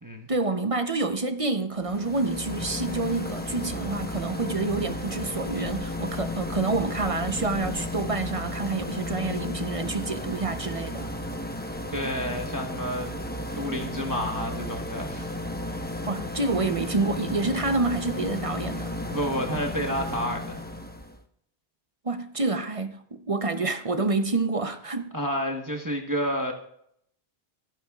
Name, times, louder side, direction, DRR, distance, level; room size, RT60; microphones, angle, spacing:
voice 1, 0.3-11.1 16.1-18.9 22.0-25.1, right 3 dB, 35° right, 0.8 m, -28 dB
sound 1, 1.8-21.2, left 1 dB, 10° left, 0.8 m, -34 dB
voice 2, 11.9-13.2 13.5-15.3 15.6-15.7 19.1-20.6 25.1-26.5, equal, 20° right, 1.1 m, -30 dB
26.5 x 9.2 x 2.4 m
omnidirectional pair, 1.1 m